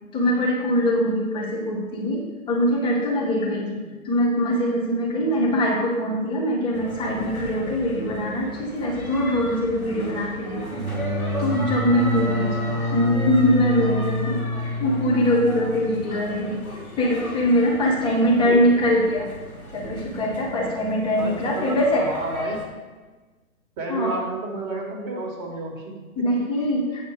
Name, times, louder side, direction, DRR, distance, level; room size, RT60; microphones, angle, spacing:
voice 1, 0.1-10.9 11.4-12.5 12.9-14.4 14.8-19.3 19.7-22.1 23.9-24.1 26.2-26.8, equal, 10° left, -3 dB, 1.5 m, -22 dB
voice 2, 5.1-5.6 12.3-12.8 18.0-18.7 21.2-22.7 23.8-25.9 26.5-26.7, right 2 dB, 30° right, 0 dB, 1.7 m, -33 dB
sound 1, 6.7-22.6, equal, 85° left, 2.0 m, -36 dB
sound 2, 10.7-16.2, left 2 dB, 10° right, 0.8 m, -27 dB
9.2 x 5.6 x 4.8 m, 1.3 s
figure-of-eight pair, 125°, 42 cm